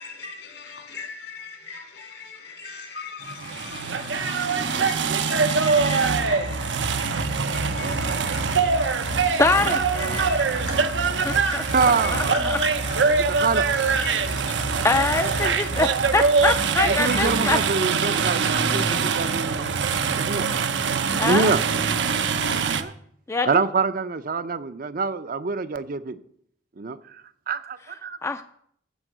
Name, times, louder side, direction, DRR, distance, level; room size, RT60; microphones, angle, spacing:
voice 1, 0.0-15.7 16.5-17.5 18.9-19.0, left 5 dB, 70° left, 2.5 m, -39 dB
sound 1, 3.2-22.8, right 5 dB, 90° right, 0.8 m, -23 dB
sound 2, 5.8-17.6, left 1 dB, 55° left, 0.7 m, -35 dB
voice 2, 9.4-9.8 11.3-12.6 14.8-17.6 21.2-21.5 23.3-23.6 28.2-28.4, left 3 dB, 15° left, 0.4 m, -24 dB
voice 3, 11.7-12.1 13.4-13.7 16.9-19.7 20.1-20.7 21.2-21.6 22.8-22.9 23.4-26.2 26.8-27.2 27.5-28.2, right 4 dB, 50° right, 0.6 m, -25 dB
13.5 x 4.6 x 7.9 m
head